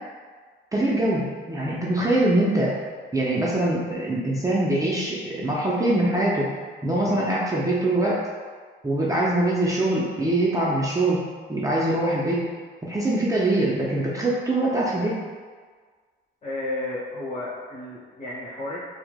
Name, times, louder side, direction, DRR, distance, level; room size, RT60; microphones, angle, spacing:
voice 1, 0.7-2.7 3.1-6.5 6.8-8.2 8.8-11.2 11.5-12.5 12.8-15.2, right 1 dB, 15° right, -6 dB, 0.5 m, -23 dB
voice 2, 16.4-18.8, left 2 dB, 40° left, -8 dB, 1.4 m, -32 dB
4.5 x 2.0 x 2.2 m, 1.6 s
cardioid pair, 90°, 20 cm